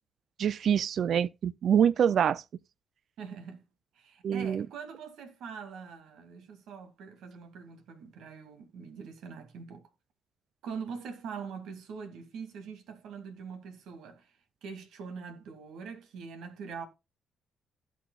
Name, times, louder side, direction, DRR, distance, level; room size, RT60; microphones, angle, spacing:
voice 1, 0.4-2.4 4.2-4.7, right 8 dB, 65° right, 0.4 m, -25 dB
voice 2, 3.2-3.6 4.0-9.9 10.6-14.3 14.6-16.9, right 6 dB, 80° right, 2.3 m, -43 dB
16.0 x 6.2 x 2.3 m
cardioid pair, 75°, 0 cm